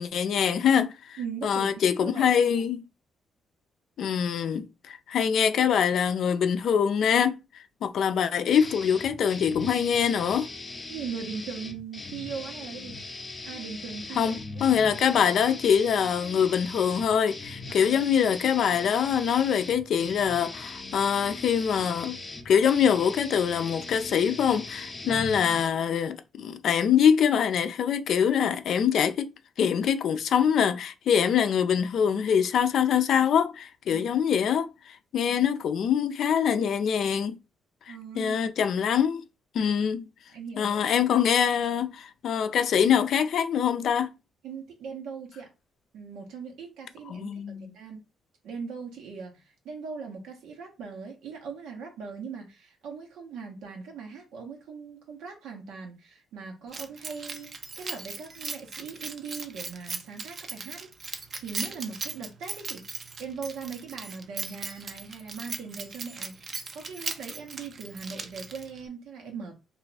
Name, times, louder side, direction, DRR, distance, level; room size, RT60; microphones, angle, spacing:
voice 1, 0.0-2.8 4.0-10.5 14.2-22.2 22.5-29.3 29.6-37.4 37.9-39.2 39.5-40.1 40.6-44.1 47.1-47.7, left 8 dB, 65° left, 0.4 m, -24 dB
voice 2, 1.2-2.5 10.9-13.0 13.4-14.7 17.8-18.0 25.0-25.2 33.9-34.1 35.3-35.4 37.9-38.4 40.3-40.8 44.4-45.5 45.9-48.0 48.4-57.5 57.8-62.8 63.2-69.5, right 5 dB, 85° right, 1.0 m, -40 dB
sound 1, 8.5-25.7, left 3 dB, 30° left, 0.6 m, -40 dB
Keys jangling, 56.7-68.8, right 4 dB, 45° right, 0.5 m, -38 dB
2.5 x 2.3 x 4.0 m
cardioid pair, 90°, 0 cm